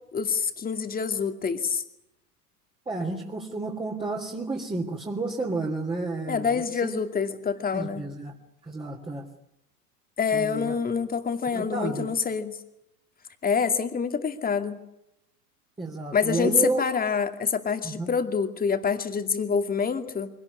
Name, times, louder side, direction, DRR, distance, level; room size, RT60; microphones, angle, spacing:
voice 1, 0.1-1.8 6.3-8.0 10.2-12.6 13.4-14.8 16.1-20.3, left 6 dB, 20° left, 8 dB, 2.4 m, -26 dB
voice 2, 2.9-7.0 7.7-8.3 8.6-9.2 10.3-10.7 11.5-12.1 15.8-16.8 17.8-18.1, right 3 dB, 10° right, -1 dB, 3.1 m, -31 dB
24.5 x 18.0 x 9.6 m, 0.84 s
figure-of-eight pair, 85°, 46 cm